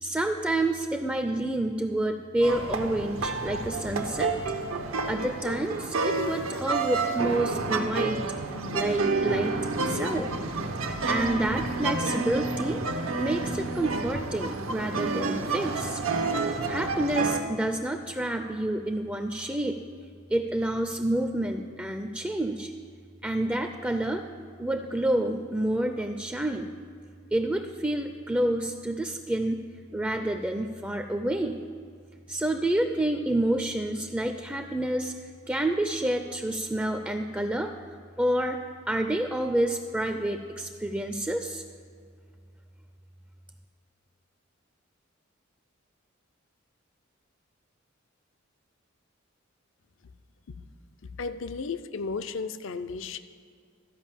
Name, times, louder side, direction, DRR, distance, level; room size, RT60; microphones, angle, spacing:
voice 1, 0.0-4.3 5.1-8.2 8.7-10.3 11.1-12.8 13.2-16.0 16.7-19.8 20.3-22.7 23.2-24.2 24.6-26.7 27.3-29.6 29.9-31.6 32.3-35.1 35.5-37.7 38.2-38.6 38.9-41.6, right 1 dB, 5° right, 6 dB, 0.4 m, -28 dB
sound 1, 2.4-17.4, right 3 dB, 85° right, 0.9 m, -29 dB
voice 2, 51.2-53.2, left 4 dB, 65° left, 11 dB, 0.5 m, -34 dB
13.5 x 5.3 x 7.3 m, 2.2 s
head